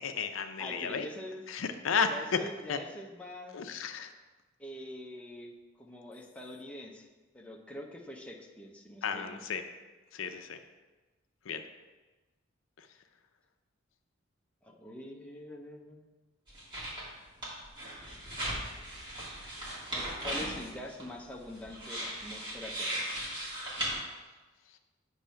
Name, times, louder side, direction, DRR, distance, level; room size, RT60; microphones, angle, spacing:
voice 1, 0.0-1.1 1.5-2.1 2.7-2.8 3.5-4.1 9.0-9.6 10.1-10.6 11.5-11.6, left 6 dB, 90° left, 8 dB, 0.5 m, -33 dB
voice 2, 0.6-1.4 2.1-3.7 4.6-5.5 5.8-7.1 7.3-9.4 14.6-16.1 19.9-23.3, left 1 dB, 5° left, -1 dB, 0.7 m, -44 dB
sound 1, 16.5-17.1 17.4-23.9, right 1 dB, 25° right, 2.1 m, -38 dB
8.6 x 3.1 x 5.6 m, 1.2 s
head